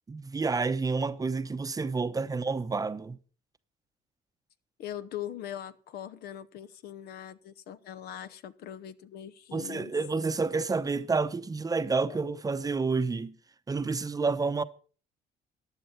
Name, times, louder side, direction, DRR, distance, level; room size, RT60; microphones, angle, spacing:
voice 1, 0.1-3.2 9.5-13.3 13.7-14.6, right 4 dB, 20° right, 0.8 m, -29 dB
voice 2, 4.8-9.9 12.1-12.2, left 10 dB, 70° left, 1.0 m, -41 dB
15.0 x 10.5 x 4.4 m
cardioid pair, 110°, 17 cm